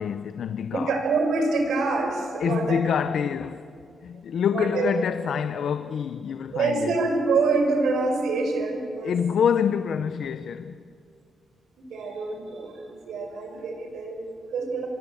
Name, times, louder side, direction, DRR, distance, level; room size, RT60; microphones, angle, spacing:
voice 1, 0.0-1.0 2.4-3.7 4.0-6.9 9.0-10.8, left 7 dB, 70° left, 0.8 m, -26 dB
voice 2, 0.7-2.8 4.5-4.9 6.5-9.1 11.8-14.9, right 3 dB, 90° right, 5.0 m, -26 dB
24.0 x 24.0 x 8.6 m
cardioid pair, 105°, 0 cm